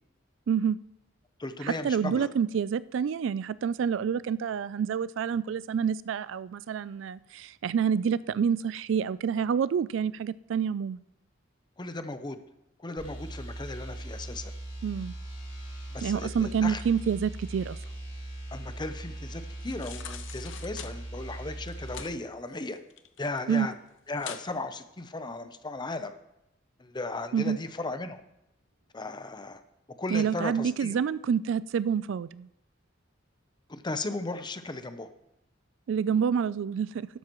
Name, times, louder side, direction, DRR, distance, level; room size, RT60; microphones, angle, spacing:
voice 1, 0.5-0.8 1.6-11.0 14.8-15.1 16.0-17.8 23.5-23.7 27.3-27.6 30.1-32.5 35.9-37.1, right 7 dB, 70° right, 18 dB, 0.3 m, -28 dB
voice 2, 1.4-2.3 11.8-12.4 12.8-14.5 15.9-16.8 18.5-22.8 23.2-23.7 24.1-26.1 26.8-28.2 28.9-29.6 30.0-30.9 33.7-35.1, left 2 dB, 25° left, 10 dB, 0.7 m, -36 dB
sound 1, 13.0-22.1, right 1 dB, 45° left, 4.7 m, -40 dB
sound 2, 19.6-20.9 21.6-22.1 22.5-23.4 23.7-23.8 24.1-24.5 25.0-25.1, left 8 dB, 70° left, 0.8 m, -42 dB
12.5 x 12.0 x 3.0 m, 0.86 s
head